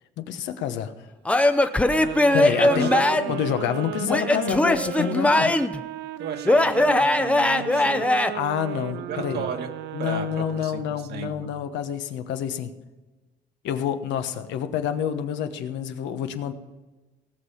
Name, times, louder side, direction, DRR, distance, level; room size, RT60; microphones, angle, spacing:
voice 1, 0.2-0.9 2.3-2.9 3.3-5.5 8.3-9.5 9.9-12.7 13.6-16.5, left 9 dB, 90° left, 8 dB, 1.1 m, -28 dB
Male speech man speaking / Yell / Laughter, 1.3-3.4 4.1-5.8 6.5-8.3, left 1 dB, 5° left, 0.6 m, -20 dB
sound 1, 1.9-11.1, right 13 dB, 80° right, 0.5 m, -35 dB
voice 2, 2.6-3.0 6.2-8.1 9.1-9.7 10.0-11.5, right 7 dB, 65° right, 5 dB, 1.6 m, -34 dB
18.5 x 6.6 x 5.6 m, 1.2 s
cardioid pair, 135°, 18 cm